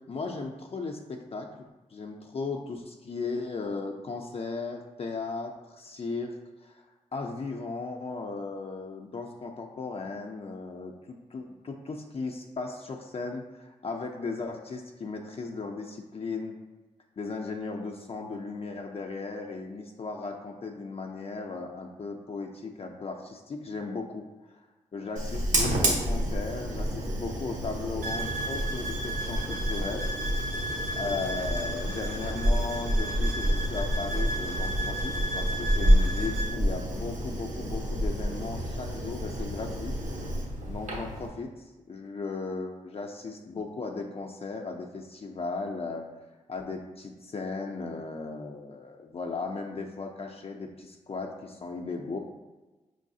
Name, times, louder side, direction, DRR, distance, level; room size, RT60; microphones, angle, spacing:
voice 1, 0.1-1.5 1.9-6.8 7.1-16.6 17.2-24.6 24.9-30.1 30.9-40.0 40.7-46.1 46.5-52.2, left 4 dB, 45° left, 2 dB, 0.4 m, -36 dB
Fire, 25.2-41.3, equal, 65° right, 1.0 m, -29 dB
sound 1, 28.0-36.5, right 1 dB, 80° right, 0.6 m, -35 dB
4.6 x 3.1 x 2.7 m, 1.2 s
cardioid pair, 50°, 14 cm